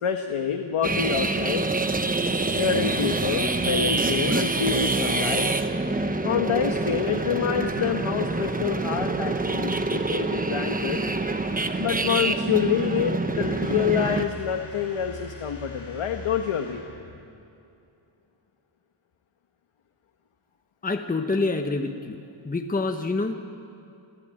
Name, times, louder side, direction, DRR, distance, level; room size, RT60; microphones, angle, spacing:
voice 1, 0.0-1.7 2.6-5.5 6.2-11.1 11.8-16.8, left 8 dB, 85° left, 5 dB, 1.3 m, -27 dB
sound 1, 0.8-14.3, right 2 dB, 15° right, 1.0 m, -26 dB
sound 2, 13.4-17.3, left 3 dB, 45° left, 4.1 m, -42 dB
voice 2, 20.8-23.3, left 3 dB, 15° left, 5 dB, 1.1 m, -27 dB
27.5 x 15.0 x 8.9 m, 2.6 s
wide cardioid pair, 130°, 49 cm